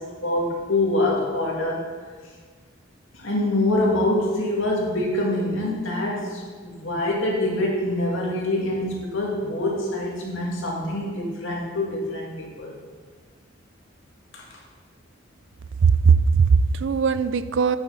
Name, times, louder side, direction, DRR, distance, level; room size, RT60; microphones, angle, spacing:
voice 1, 0.0-1.8 3.1-12.7 14.3-14.4, left 1 dB, 70° left, -3 dB, 2.2 m, -25 dB
voice 2, 15.8-17.8, right 5 dB, 60° right, 13 dB, 0.4 m, -19 dB
8.8 x 7.2 x 4.4 m, 1.5 s
head